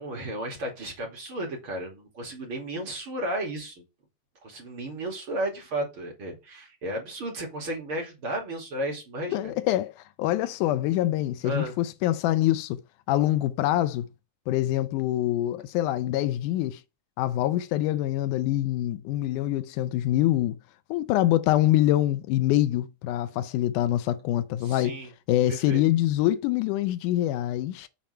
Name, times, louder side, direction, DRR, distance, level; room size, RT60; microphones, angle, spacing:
voice 1, 0.0-3.9 4.4-9.5 11.4-11.8 24.6-25.1 25.5-25.8, right 1 dB, 45° right, 3.3 m, -33 dB
voice 2, 9.3-12.8 13.1-14.1 14.5-16.8 17.2-20.6 20.9-25.0 25.3-27.9, left 14 dB, 90° left, 2.2 m, -25 dB
7.4 x 4.4 x 5.6 m
omnidirectional pair, 3.5 m